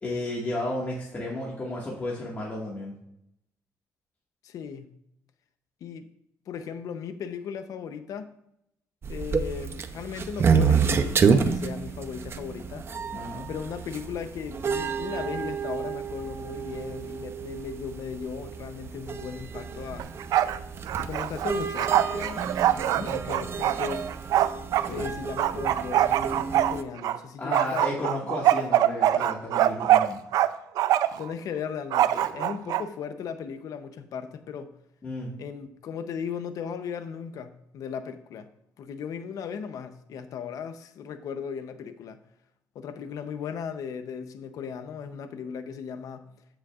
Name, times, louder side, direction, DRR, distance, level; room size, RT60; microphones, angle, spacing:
voice 1, 0.0-3.0 13.1-13.5 22.7-23.1 24.9-25.0 27.4-30.2 35.0-35.3, left 1 dB, 25° left, 1.8 m, -33 dB
voice 2, 4.4-4.9 5.8-6.1 6.5-8.3 9.1-12.9 13.5-20.1 21.0-22.6 23.0-24.1 24.9-28.1 31.2-34.7 35.4-38.5 38.8-42.2 42.7-46.3, left 7 dB, 70° left, 0.7 m, -37 dB
sound 1, 9.0-26.8, right 6 dB, 40° right, 0.7 m, -29 dB
Bark, 20.0-20.6 20.9-24.9 25.4-27.2 27.5-30.5 30.8-31.2 31.9-32.8, right 12 dB, 80° right, 0.4 m, -23 dB
14.0 x 6.4 x 2.5 m
cardioid pair, 110°, 6 cm